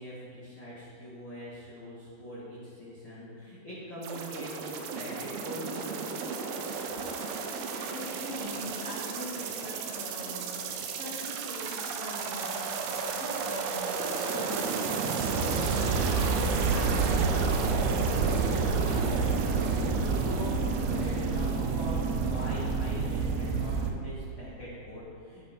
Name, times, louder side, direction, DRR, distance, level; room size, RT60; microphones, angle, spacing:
voice 1, 0.0-6.0 18.6-19.7 20.1-25.5, equal, 75° left, -9 dB, 1.1 m, -42 dB
sound 1, 4.0-23.9, right 4 dB, 85° right, 2.3 m, -30 dB
voice 2, 7.7-10.5 10.8-17.7, equal, 55° right, -9 dB, 1.7 m, -42 dB
14.5 x 5.6 x 3.6 m, 2.4 s
omnidirectional pair, 5.0 m